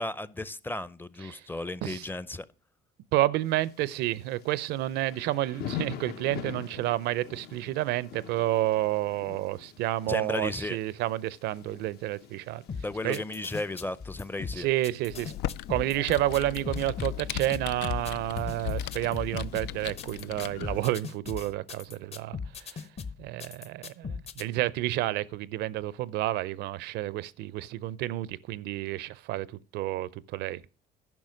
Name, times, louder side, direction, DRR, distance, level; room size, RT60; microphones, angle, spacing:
voice 1, 0.0-2.5 10.1-10.8 12.8-14.7, left 2 dB, 10° left, 0.5 m, -34 dB
voice 2, 3.1-12.6 13.0-13.2 14.6-15.3 15.7-22.4 22.7-22.8 23.2-29.5 29.7-30.6, right 15 dB, 85° right, 0.5 m, -30 dB
Thunder / Rain, 3.4-20.3, left 9 dB, 70° left, 1.2 m, -46 dB
sound 1, 12.7-24.4, left 5 dB, 35° left, 0.9 m, -38 dB
Computer keyboard, 15.1-20.9, left 12 dB, 90° left, 0.5 m, -38 dB
11.0 x 5.6 x 6.3 m
cardioid pair, 110°, 17 cm